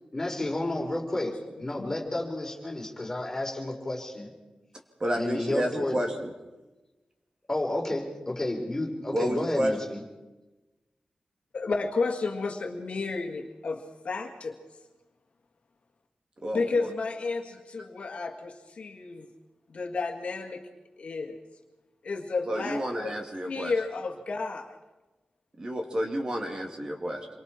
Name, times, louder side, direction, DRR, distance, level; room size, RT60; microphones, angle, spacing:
voice 1, 0.1-1.3 1.6-4.3 5.1-6.0 7.5-10.0, left 1 dB, 15° left, 0 dB, 3.8 m, -31 dB
voice 2, 5.0-6.3 9.1-9.7 16.4-16.9 22.5-23.7 25.6-27.3, equal, 35° right, 2 dB, 2.6 m, -30 dB
voice 3, 11.5-14.6 16.5-19.3 19.7-20.6 21.0-21.4 22.0-23.1 23.5-24.8, left 4 dB, 60° left, 4 dB, 1.9 m, -32 dB
27.5 x 23.5 x 4.4 m, 1.1 s
wide cardioid pair, 160°, 2 cm